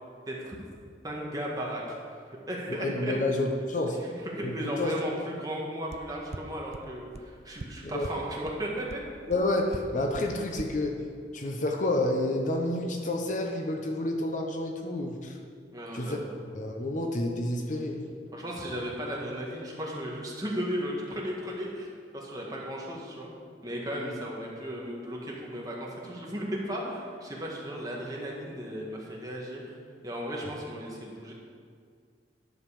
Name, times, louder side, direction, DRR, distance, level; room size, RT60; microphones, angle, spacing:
voice 1, 0.3-0.6 1.0-2.0 2.3-3.1 4.0-9.0 15.7-16.3 18.3-23.3 23.6-29.8 30.0-31.3, equal, 20° right, -3 dB, 1.7 m, -35 dB
voice 2, 2.8-4.0 4.4-5.0 7.8-8.1 9.3-10.9 11.3-15.4 15.9-16.2 16.5-18.1, left 1 dB, 45° left, 2 dB, 0.9 m, -29 dB
sound 1, 5.9-6.0 6.3-6.4 6.7-6.8 7.1-7.2 7.6-7.7 8.0-8.1 8.5-8.6 8.9-9.0 9.3-9.4 9.7-9.8 10.1-10.2 10.6-10.7, right 3 dB, 40° right, 0.5 m, -38 dB
10.5 x 5.4 x 7.0 m, 2.2 s
head